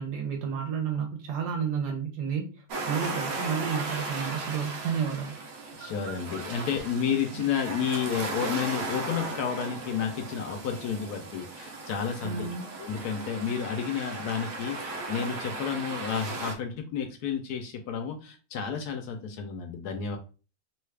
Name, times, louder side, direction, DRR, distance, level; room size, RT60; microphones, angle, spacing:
voice 1, 0.0-5.4 12.2-12.7, right 7 dB, 90° right, 1.2 m, -31 dB
sound 1, 2.7-16.5, right 3 dB, 70° right, 0.9 m, -36 dB
voice 2, 5.8-12.4 12.8-20.2, left 7 dB, 75° left, 1.1 m, -31 dB
3.0 x 2.3 x 3.2 m
omnidirectional pair, 1.7 m